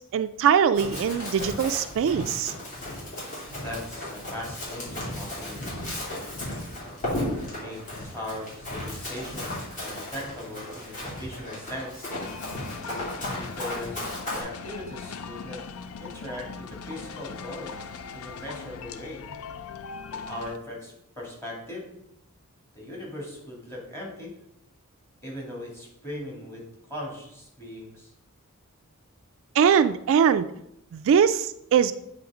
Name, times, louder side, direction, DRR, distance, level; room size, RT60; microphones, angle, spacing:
voice 1, 0.1-2.5 29.6-30.5 30.9-31.9, right 7 dB, 60° right, 12 dB, 0.3 m, -21 dB
Run, 0.7-14.4, left 1 dB, 35° left, 2.9 m, -35 dB
voice 2, 3.6-5.9 7.1-12.1 13.3-15.6 16.0-17.8 18.1-19.2 20.1-21.9 22.7-24.3 25.2-26.6 26.9-28.1, left 1 dB, 10° left, -3 dB, 2.2 m, -39 dB
sound 1, 12.1-20.6, left 5 dB, 70° left, 0.5 m, -40 dB
8.5 x 3.4 x 4.9 m, 0.79 s
head